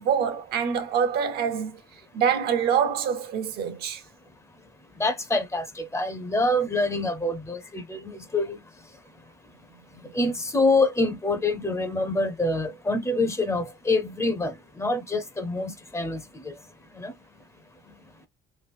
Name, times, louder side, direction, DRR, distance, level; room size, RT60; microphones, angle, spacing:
voice 1, 0.0-1.8 2.1-4.0, right 7 dB, 70° right, 0.8 m, -25 dB
voice 2, 5.0-8.6 10.1-16.5 17.0-17.1, left 2 dB, 15° left, 0.6 m, -26 dB
3.1 x 2.3 x 3.3 m
cardioid pair, 110°, 17 cm